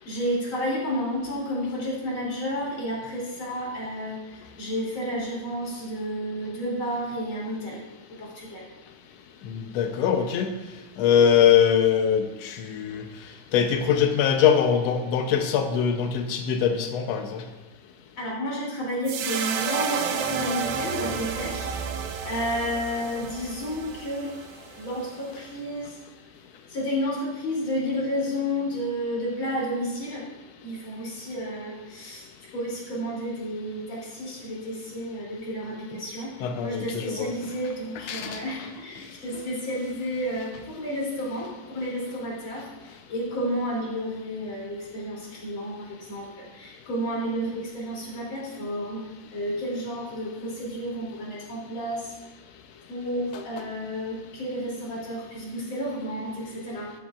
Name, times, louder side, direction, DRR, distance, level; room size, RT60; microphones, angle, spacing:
voice 1, 0.0-4.2 4.6-7.8 8.2-8.6 18.2-21.9 22.2-24.3 24.8-26.0 26.7-30.2 30.6-32.2 32.5-49.0 49.3-52.1 52.9-56.9, equal, 40° left, -4 dB, 3.3 m, -31 dB
voice 2, 9.5-10.5 11.0-13.0 13.5-17.4 36.4-37.3 38.1-38.4 53.3-53.4, left 8 dB, 90° left, 5 dB, 1.5 m, -22 dB
sound 1, 19.1-25.4, right 6 dB, 85° right, 2.5 m, -31 dB
12.5 x 10.0 x 2.4 m, 1.1 s
omnidirectional pair, 3.8 m